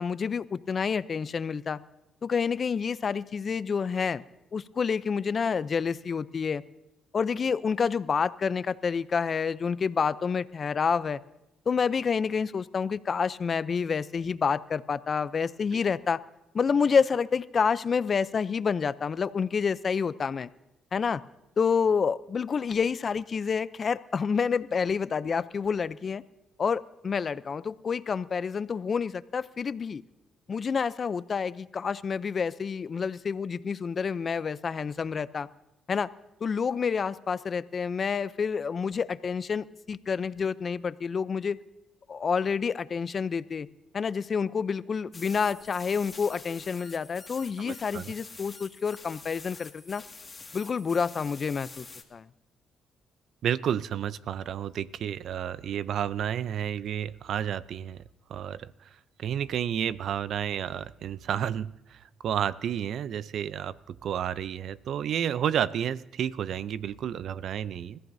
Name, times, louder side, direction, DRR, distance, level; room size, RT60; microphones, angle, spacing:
voice 1, 0.0-1.8 2.2-4.2 4.5-6.6 7.1-11.2 11.7-16.2 16.5-20.5 20.9-21.2 21.6-26.2 26.6-30.0 30.5-35.5 35.9-36.1 36.4-41.6 42.1-43.7 43.9-50.0 50.5-51.9 52.1-52.3, left 6 dB, 45° left, 16 dB, 0.5 m, -28 dB
sound 1, 45.1-52.0, left 3 dB, 25° left, 2.0 m, -47 dB
voice 2, 47.6-48.1 53.4-58.0 58.3-58.9 59.2-68.0, right 9 dB, 70° right, 17 dB, 0.5 m, -31 dB
30.0 x 14.5 x 2.7 m, 0.91 s
cardioid pair, 90°, 0 cm